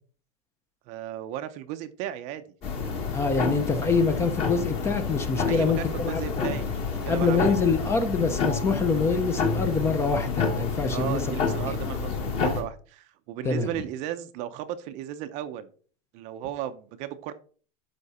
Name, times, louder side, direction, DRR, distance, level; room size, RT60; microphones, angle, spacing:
voice 1, 0.9-2.4 5.5-7.6 10.9-15.7 16.1-17.3, right 11 dB, 35° right, 0.7 m, -35 dB
sound 1, 2.6-12.6, left 5 dB, 30° left, 1.8 m, -29 dB
voice 2, 3.1-6.2 7.1-11.4 11.7-11.8 13.4-13.7, left 4 dB, 15° left, 0.7 m, -25 dB
11.5 x 4.6 x 4.2 m
supercardioid pair, 170°, 20 cm